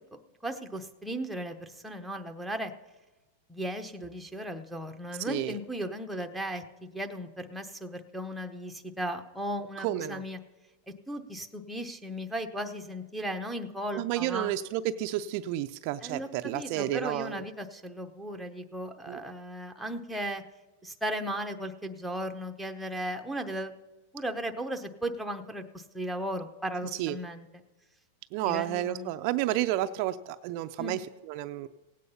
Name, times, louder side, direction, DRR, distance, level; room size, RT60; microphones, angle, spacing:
voice 1, 0.4-2.7 3.5-10.4 11.1-14.5 16.0-20.4 20.8-23.7 24.1-27.5 28.5-29.1 30.8-31.0, right 1 dB, ahead, 3 dB, 0.8 m, -36 dB
voice 2, 5.2-5.6 9.8-10.2 13.9-17.4 19.1-19.2 27.0-27.2 28.3-31.7, right 13 dB, 45° right, 8 dB, 0.5 m, -31 dB
17.5 x 8.5 x 5.6 m, 1.1 s
supercardioid pair, 155°, 0 cm